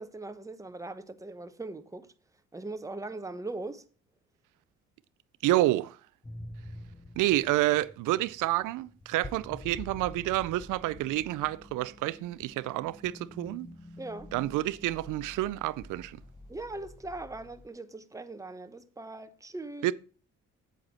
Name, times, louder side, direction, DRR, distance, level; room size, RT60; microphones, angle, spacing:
voice 1, 0.0-2.1 2.5-3.8 14.0-14.3 16.5-19.9, right 2 dB, 10° right, 0.9 m, -40 dB
voice 2, 5.4-6.0 7.2-13.7 14.3-16.2 19.8-19.9, right 16 dB, 90° right, 0.5 m, -29 dB
sound 1, 6.2-17.7, left 1 dB, 15° left, 0.9 m, -48 dB
7.9 x 7.8 x 4.2 m
cardioid pair, 90°, 30 cm